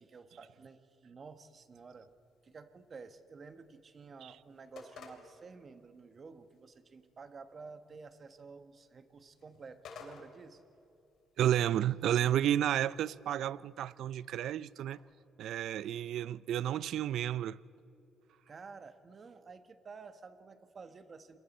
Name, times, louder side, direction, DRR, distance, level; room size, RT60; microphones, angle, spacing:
voice 1, 0.0-2.1 2.4-10.6 18.5-21.4, right 4 dB, 40° right, 1.3 m, -51 dB
sound 1, 1.2-15.0, left 5 dB, 65° left, 3.3 m, -59 dB
voice 2, 11.4-15.0 15.4-17.6, right 11 dB, 75° right, 0.4 m, -31 dB
28.0 x 22.5 x 4.3 m
cardioid pair, 95°, 0 cm